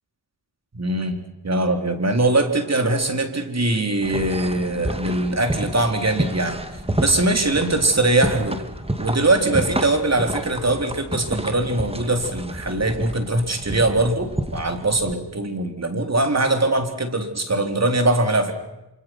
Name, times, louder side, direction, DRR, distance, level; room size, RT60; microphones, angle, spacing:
voice 1, 0.7-8.6 9.0-18.5, right 2 dB, 35° right, 6 dB, 4.1 m, -22 dB
sound 1, 4.0-15.1, right 1 dB, 15° right, 2.6 m, -30 dB
27.0 x 26.5 x 6.2 m, 0.96 s
cardioid pair, 50°, 43 cm